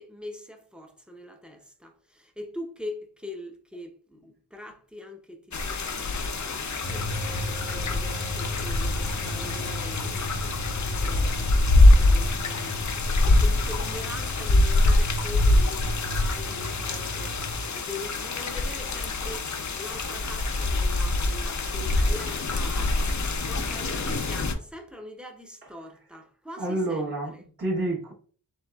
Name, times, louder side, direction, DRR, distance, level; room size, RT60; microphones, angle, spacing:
voice 1, 0.0-7.2 7.7-12.8 13.2-17.4 17.7-23.0 23.5-27.4, left 1 dB, ahead, 0.7 m, -42 dB
sound 1, 5.5-24.5, left 2 dB, 50° left, 0.5 m, -24 dB
sound 2, 6.8-17.6, equal, 80° left, 1.4 m, -35 dB
voice 2, 26.6-28.1, right 2 dB, 65° right, 1.4 m, -30 dB
7.2 x 2.4 x 2.3 m
wide cardioid pair, 60°, 39 cm